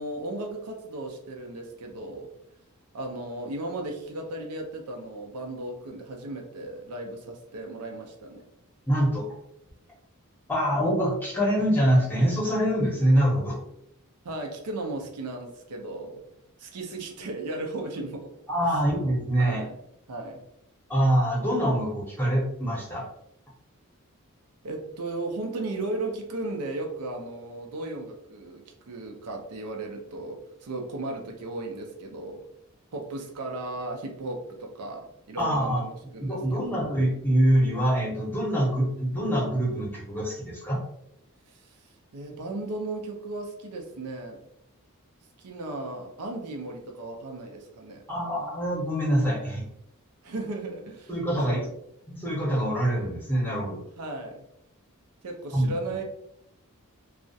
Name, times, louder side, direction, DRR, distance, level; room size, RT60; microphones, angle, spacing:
voice 1, 0.0-2.3 2.9-8.4 14.2-16.2 16.6-18.3 18.6-18.8 19.4-19.7 20.1-20.4 24.6-32.4 32.9-36.7 41.5-41.8 42.1-44.4 45.4-48.0 50.2-51.1 51.5-51.7 54.0-54.4 55.2-56.0, right 2 dB, 90° right, 2 dB, 0.5 m, -35 dB
voice 2, 8.9-9.2 10.5-13.6 18.5-19.6 20.9-23.0 35.4-35.8 36.2-40.8 48.1-49.6 51.1-51.6 52.1-53.8 55.5-56.0, equal, 10° left, -4 dB, 0.7 m, -25 dB
2.3 x 2.0 x 2.6 m, 0.77 s
head